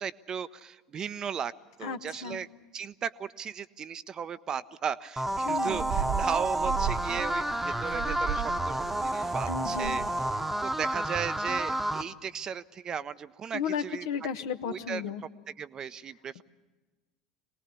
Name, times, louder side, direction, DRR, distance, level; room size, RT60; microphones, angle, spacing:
voice 1, 0.0-1.5 1.8-2.5 2.7-10.0 10.3-14.1 14.6-15.0 15.5-16.4, right 7 dB, 35° right, 14 dB, 0.7 m, -36 dB
voice 2, 1.8-2.4 5.4-5.9 9.5-10.0 13.5-15.2, left 6 dB, 65° left, 8 dB, 1.2 m, -34 dB
sound 1, 5.2-12.0, right 1 dB, 10° right, 1.1 m, -30 dB
sound 2, 5.3-10.3, right 10 dB, 50° right, 1.3 m, -36 dB
23.5 x 19.5 x 8.2 m, 1.2 s
figure-of-eight pair, 70°, 2 cm